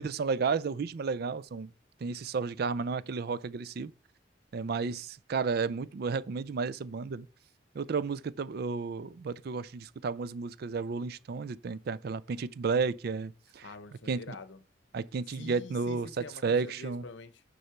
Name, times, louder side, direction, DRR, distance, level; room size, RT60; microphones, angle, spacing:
voice 1, 0.0-1.7 2.0-3.9 4.5-7.3 7.7-13.7 14.1-14.3 14.9-16.1 16.4-17.0, right 5 dB, 55° right, 0.4 m, -32 dB
voice 2, 13.6-14.6 15.3-17.4, left 3 dB, 70° left, 0.7 m, -46 dB
6.6 x 5.5 x 4.5 m
head